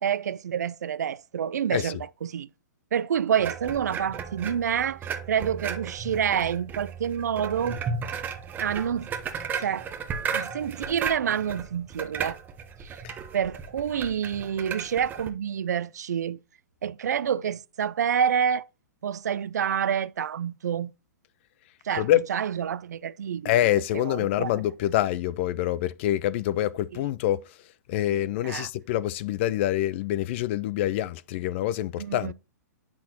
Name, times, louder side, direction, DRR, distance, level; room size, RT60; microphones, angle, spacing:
voice 1, 0.0-2.5 2.9-7.8 8.6-9.1 9.6-9.9 10.3-12.4 12.8-13.0 13.3-16.4 16.8-18.7 19.0-20.9 21.8-23.5 23.9-24.5 26.9-27.0 28.4-28.7 32.0-32.3, right 8 dB, 70° right, 0.4 m, -28 dB
sound 1, 3.4-15.3, right 6 dB, 20° right, 0.8 m, -35 dB
voice 2, 23.4-27.6 27.9-32.3, left 13 dB, 40° left, 0.3 m, -26 dB
8.4 x 6.0 x 2.8 m
hypercardioid pair, 120°, 9 cm